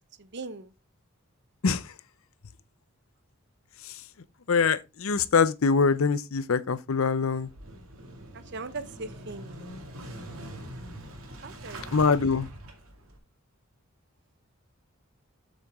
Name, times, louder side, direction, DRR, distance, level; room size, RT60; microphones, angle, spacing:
voice 1, 0.2-0.7 8.3-9.8 11.4-11.9, right 3 dB, 55° right, 0.9 m, -40 dB
voice 2, 4.5-7.5 11.9-12.5, left 5 dB, 70° left, 0.6 m, -23 dB
Motorcycle / Engine starting, 7.3-13.2, right 1 dB, 80° right, 2.4 m, -43 dB
7.8 x 6.5 x 3.6 m
head